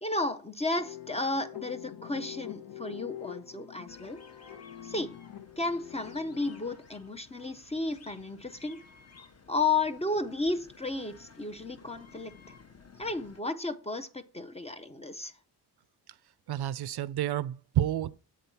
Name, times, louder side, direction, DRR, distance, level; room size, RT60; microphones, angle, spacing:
voice 1, 0.0-4.2 4.8-5.2 5.6-8.8 9.5-12.6 13.0-15.3, left 3 dB, 15° left, 0.5 m, -33 dB
sound 1, 0.7-6.7, left 12 dB, 60° left, 0.9 m, -45 dB
sound 2, 3.9-13.4, left 5 dB, 35° left, 0.9 m, -55 dB
voice 2, 16.5-18.2, right 12 dB, 65° right, 0.5 m, -30 dB
8.5 x 3.8 x 5.6 m
wide cardioid pair, 120°, 42 cm